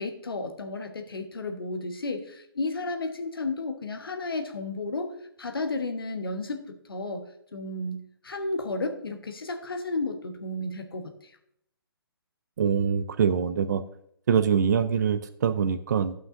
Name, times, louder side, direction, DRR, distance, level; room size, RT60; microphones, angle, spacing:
voice 1, 0.0-5.1 5.4-11.1, left 2 dB, 70° left, 5 dB, 1.3 m, -33 dB
voice 2, 12.6-13.8 14.3-16.1, right 7 dB, 50° right, 11 dB, 0.5 m, -24 dB
14.5 x 5.9 x 2.7 m, 0.71 s
figure-of-eight pair, 135°, 13 cm